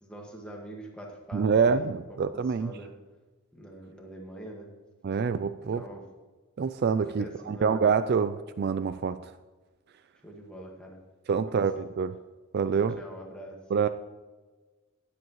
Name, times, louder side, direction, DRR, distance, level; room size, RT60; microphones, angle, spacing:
voice 1, 0.0-2.9 3.5-4.7 5.7-6.1 7.2-7.8 10.2-11.0 11.4-11.6 12.7-13.6, right 1 dB, 5° left, -1 dB, 1.8 m, -44 dB
voice 2, 1.3-2.7 5.0-5.8 6.6-9.3 11.3-12.2 12.5-13.0 13.7-13.9, right 6 dB, 45° right, 12 dB, 0.3 m, -26 dB
18.5 x 7.9 x 3.1 m, 1.3 s
head